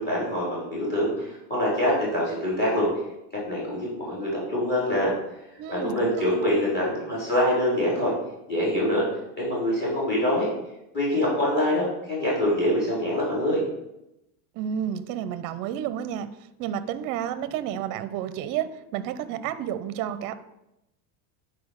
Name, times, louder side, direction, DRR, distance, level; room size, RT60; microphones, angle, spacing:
voice 1, 0.0-2.9 3.5-5.4 5.7-8.1 8.5-9.1 9.4-10.5 10.9-13.7, left 1 dB, 20° left, -5 dB, 4.0 m, -25 dB
voice 2, 5.6-6.4 14.5-16.3 16.6-20.3, right 9 dB, 45° right, 13 dB, 0.7 m, -31 dB
9.3 x 4.7 x 6.5 m, 0.88 s
cardioid pair, 155°, 46 cm